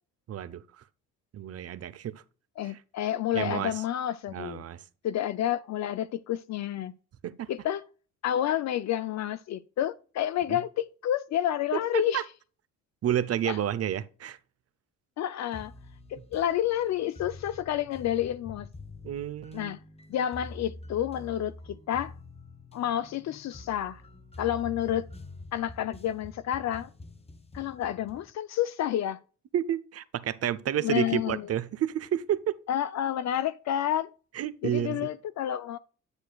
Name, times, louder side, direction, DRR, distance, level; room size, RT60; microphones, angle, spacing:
voice 1, 0.3-0.8 1.3-2.2 2.6-2.8 3.3-3.7 4.3-4.8 7.2-7.5 10.5-10.6 11.7-12.2 13.0-14.4 19.0-19.8 29.5-32.6 34.3-35.1, right 10 dB, 55° right, 0.7 m, -30 dB
voice 2, 2.6-4.6 5.0-6.9 7.5-7.8 8.2-12.2 13.5-13.6 15.2-15.7 16.1-18.7 19.5-19.8 20.1-22.1 22.7-24.0 24.4-25.1 25.5-26.9 27.5-29.2 30.8-31.5 32.7-34.1 34.6-35.8, left 11 dB, 65° left, 0.5 m, -29 dB
sound 1, 15.5-28.3, left 2 dB, 20° left, 1.0 m, -46 dB
9.8 x 6.4 x 2.3 m
cardioid pair, 90°, 30 cm